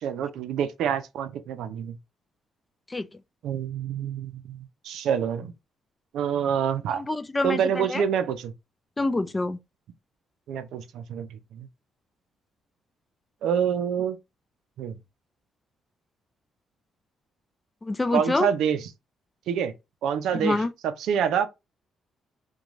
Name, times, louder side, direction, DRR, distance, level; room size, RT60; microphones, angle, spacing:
voice 1, 0.0-2.0 3.4-5.5 6.1-7.0 7.4-8.5 10.5-11.7 13.4-14.2 14.8-15.0 18.1-18.9 19.5-19.7 20.0-21.5, right 8 dB, 80° right, 0.4 m, -27 dB
voice 2, 7.0-8.0 9.0-9.6 17.8-18.5 20.3-20.7, left 2 dB, 20° left, 0.3 m, -26 dB
3.0 x 2.2 x 2.4 m
cardioid pair, 90°, 0 cm